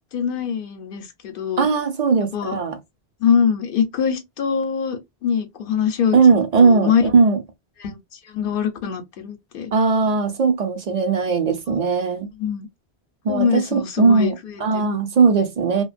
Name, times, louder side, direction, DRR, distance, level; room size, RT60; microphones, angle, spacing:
voice 1, 0.1-1.7 2.3-2.6 3.2-6.2 6.6-7.0 7.8-9.7 12.4-12.7 13.3-14.9, left 7 dB, 60° left, 0.8 m, -23 dB
voice 2, 1.6-2.8 6.1-7.4 9.7-12.3 13.2-15.8, right 4 dB, 50° right, 0.6 m, -18 dB
2.8 x 2.2 x 2.4 m
omnidirectional pair, 1.1 m